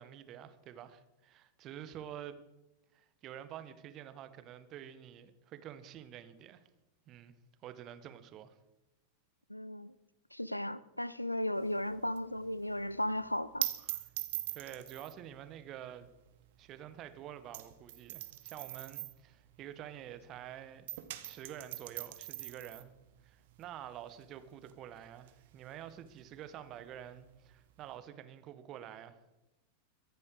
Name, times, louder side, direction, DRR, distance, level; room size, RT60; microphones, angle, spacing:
voice 1, 0.0-2.4 2.9-6.6 7.1-7.3 7.6-8.5 13.8-14.0 14.5-16.1 16.6-20.9 21.2-22.9 23.2-29.2, right 10 dB, 35° right, 1.5 m, -48 dB
voice 2, 9.5-9.9 10.3-13.7, left 1 dB, 90° left, 0.6 m, -35 dB
sound 1, 11.6-20.4 20.7-28.0, right 15 dB, 55° right, 1.4 m, -43 dB
23.0 x 10.5 x 4.9 m
figure-of-eight pair, 90°, 0 cm